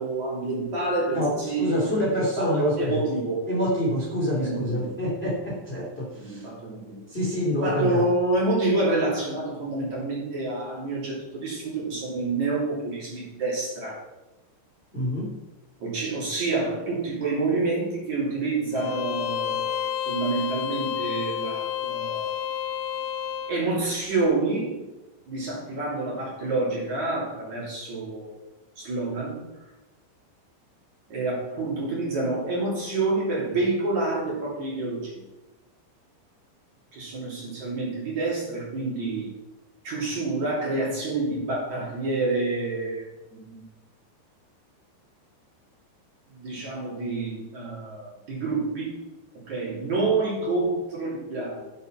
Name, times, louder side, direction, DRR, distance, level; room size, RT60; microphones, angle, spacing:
voice 1, 0.0-2.0 2.4-3.5 4.4-4.9 6.1-7.0 7.5-14.0 15.8-22.4 23.5-24.8 25.3-28.4 28.8-29.4 31.1-35.2 36.9-39.3 39.8-43.1 43.3-43.6 46.3-49.0 49.3-51.6, right 3 dB, 45° right, -5 dB, 3.9 m, -28 dB
voice 2, 1.1-3.0 3.5-6.5 7.1-8.0 14.9-15.4, left 1 dB, 15° left, -5 dB, 2.4 m, -27 dB
Bowed string instrument, 18.8-23.6, left 10 dB, 80° left, 2.7 m, -30 dB
10.5 x 7.1 x 5.8 m, 1.0 s
omnidirectional pair, 5.2 m